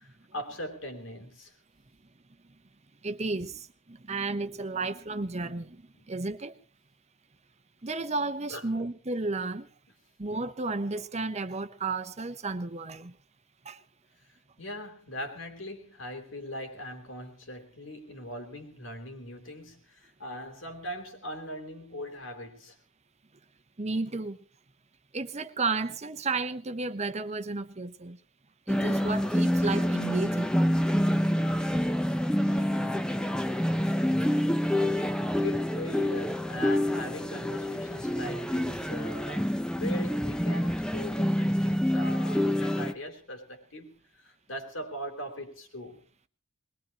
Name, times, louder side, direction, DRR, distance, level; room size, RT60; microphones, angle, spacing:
voice 1, 0.0-1.5 3.4-3.5 6.0-6.1 8.5-8.7 14.6-22.8 32.4-33.5 35.3-46.0, left 1 dB, 75° left, 3.6 m, -40 dB
voice 2, 3.0-3.6 3.9-6.5 7.8-9.7 10.2-13.1 13.6-13.8 23.8-24.4 25.1-28.2 28.7-30.6, right 3 dB, 35° right, 0.9 m, -32 dB
sound 1, 28.7-42.9, equal, 5° left, 0.8 m, -27 dB
21.5 x 21.0 x 3.0 m
head